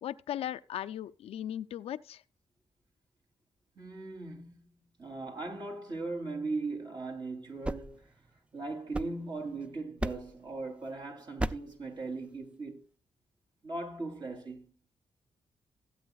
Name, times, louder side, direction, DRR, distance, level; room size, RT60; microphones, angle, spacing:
voice 1, 0.0-2.2, left 11 dB, 85° left, 0.4 m, -37 dB
voice 2, 3.7-4.7 5.0-8.1 8.5-12.8 13.6-14.7, right 3 dB, 50° right, 3.2 m, -38 dB
sound 1, 7.4-9.6 10.0-10.5 11.4-11.8, right 1 dB, 10° right, 0.5 m, -37 dB
17.0 x 8.5 x 2.3 m
cardioid pair, 80°, 10 cm